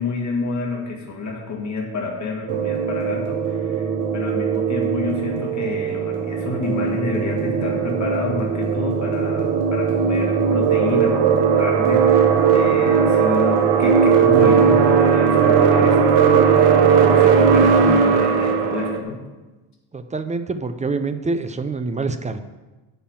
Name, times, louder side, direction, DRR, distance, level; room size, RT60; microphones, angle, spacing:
voice 1, 0.0-19.2, left 3 dB, 35° left, -1 dB, 2.3 m, -29 dB
sound 1, 2.5-19.0, right 6 dB, 80° right, 1.2 m, -18 dB
voice 2, 19.9-22.4, right 3 dB, 15° right, 10 dB, 0.4 m, -26 dB
8.6 x 5.6 x 7.4 m, 1.2 s
cardioid pair, 115°, 50 cm